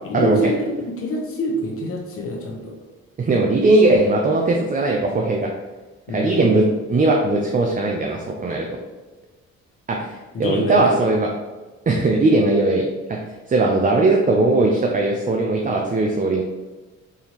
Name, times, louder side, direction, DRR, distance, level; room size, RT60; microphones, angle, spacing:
voice 1, 0.0-2.8 6.1-6.6 10.3-11.1, left 1 dB, 45° left, -1 dB, 1.0 m, -26 dB
voice 2, 3.2-5.5 6.1-8.7 9.9-11.3 11.9-13.2 13.5-16.4, right 2 dB, 30° right, 0 dB, 0.5 m, -19 dB
4.6 x 3.4 x 2.9 m, 1.2 s
cardioid pair, 90°, 30 cm